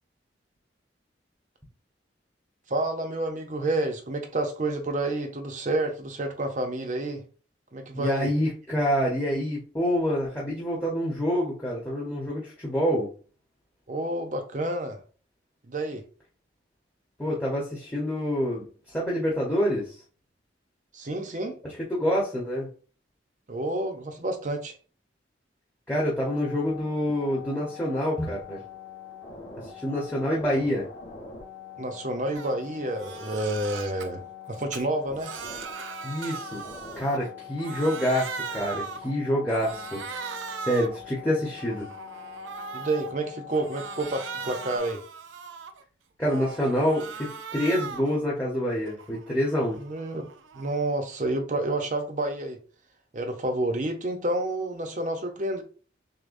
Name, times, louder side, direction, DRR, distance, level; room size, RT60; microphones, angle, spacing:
voice 1, 2.7-7.2 7.7-8.3 13.9-15.0 15.7-16.0 20.9-21.5 23.5-24.7 31.8-35.3 42.7-45.0 49.8-50.3 50.5-52.6 53.1-55.6, right 2 dB, 40° right, 0.7 m, -29 dB
voice 2, 7.9-13.1 17.2-20.0 22.0-22.7 25.9-28.6 29.7-30.9 36.0-36.6 37.0-40.0 40.6-41.9 46.2-49.8, equal, 10° left, 0.9 m, -27 dB
sound 1, 26.2-44.8, left 8 dB, 45° left, 1.4 m, -44 dB
Crying sobbing, 32.3-32.6 32.9-34.1 34.5-37.3 37.6-39.1 39.5-41.0 41.4-43.1 43.5-45.8 46.2-48.2 48.5-50.9, right 6 dB, 85° right, 0.5 m, -39 dB
6.5 x 2.2 x 2.5 m
head